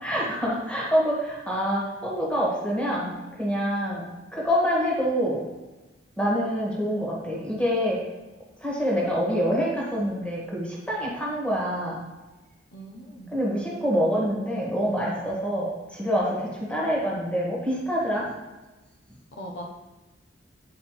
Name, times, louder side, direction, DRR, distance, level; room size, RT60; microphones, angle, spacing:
voice 1, 0.0-4.0 4.3-5.4 6.2-8.0 8.6-12.0 13.3-18.3, equal, 5° left, -5 dB, 1.7 m, -26 dB
voice 2, 12.7-13.4 19.3-19.6, equal, 70° left, 0 dB, 0.9 m, -40 dB
8.4 x 4.9 x 3.2 m, 1.1 s
head